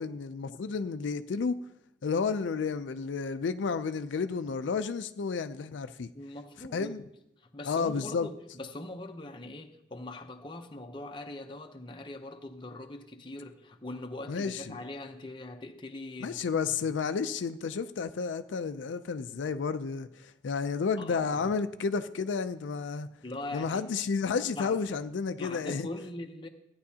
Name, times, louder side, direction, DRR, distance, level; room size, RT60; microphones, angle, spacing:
voice 1, 0.0-1.6 2.0-6.1 6.7-7.0 7.6-8.3 14.3-14.8 16.2-23.1 23.5-25.9, left 5 dB, 85° left, 0.4 m, -31 dB
voice 2, 6.1-7.0 7.4-16.4 16.8-17.0 21.0-21.6 23.2-23.8 24.5-25.0 25.3-26.5, left 2 dB, 25° left, 0.7 m, -42 dB
15.5 x 9.4 x 2.8 m
head